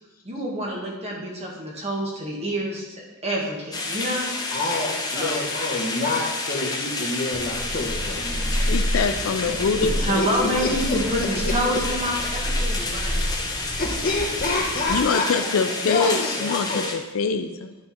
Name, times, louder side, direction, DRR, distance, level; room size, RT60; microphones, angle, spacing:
voice 1, 0.2-4.3 5.1-5.4 10.0-13.4, equal, 30° right, -2 dB, 1.6 m, -27 dB
sound 1, 3.7-16.9, left 3 dB, 15° left, 0.9 m, -30 dB
voice 2, 4.5-8.7 9.2-9.7 10.2-11.8 13.8-16.8, left 2 dB, 40° left, 0 dB, 1.2 m, -28 dB
sound 2, 7.3-15.0, equal, 10° right, 0.4 m, -29 dB
voice 3, 8.6-10.8 14.9-16.8 17.1-17.7, left 5 dB, 65° left, 8 dB, 0.4 m, -24 dB
11.0 x 3.7 x 4.2 m, 1.1 s
head